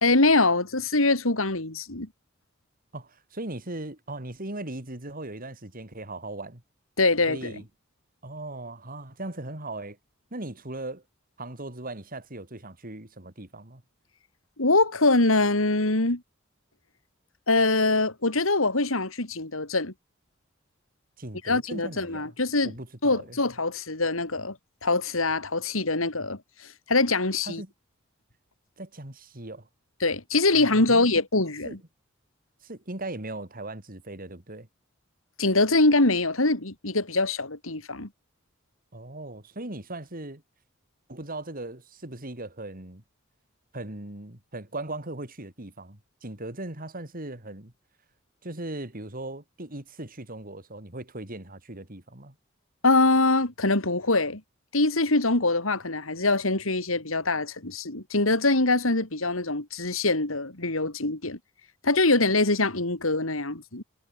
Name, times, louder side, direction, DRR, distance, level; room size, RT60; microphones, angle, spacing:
voice 1, 0.0-2.1 7.0-7.6 14.6-16.2 17.5-19.9 21.5-22.7 23.0-24.6 24.8-26.4 26.9-27.6 30.0-31.8 35.4-38.1 52.8-54.4 54.7-61.4 61.8-63.8, left 2 dB, 85° left, 3.5 m, -23 dB
voice 2, 2.9-6.6 7.3-7.6 8.2-10.0 10.3-11.0 11.4-13.8 21.2-22.3 22.6-23.4 27.4-27.7 28.8-29.7 30.6-31.1 31.6-31.8 32.6-34.7 38.9-40.4 41.1-43.0 43.7-47.7 48.4-52.3, right 2 dB, 45° right, 3.7 m, -38 dB
head